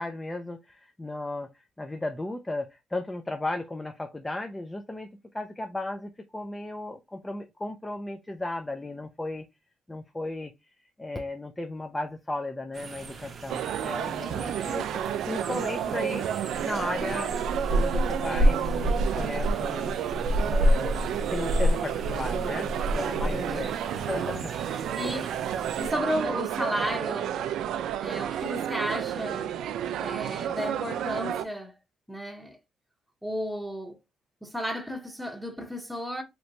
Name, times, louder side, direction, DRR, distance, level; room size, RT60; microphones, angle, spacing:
voice 1, 0.0-5.1 5.3-9.5 9.9-10.5 11.0-20.0 20.4-25.3, left 2 dB, 15° left, 0.4 m, -35 dB
sound 1, 12.7-25.9, equal, 45° right, 0.7 m, -30 dB
sound 2, 13.5-31.5, right 10 dB, 80° right, 0.3 m, -31 dB
voice 2, 22.9-23.5 25.0-25.3 25.8-27.4 28.0-29.5 30.0-31.7 32.1-32.6 33.2-34.0 34.4-36.2, equal, 5° right, 0.8 m, -33 dB
3.2 x 2.9 x 2.5 m
cardioid pair, 90°, 0 cm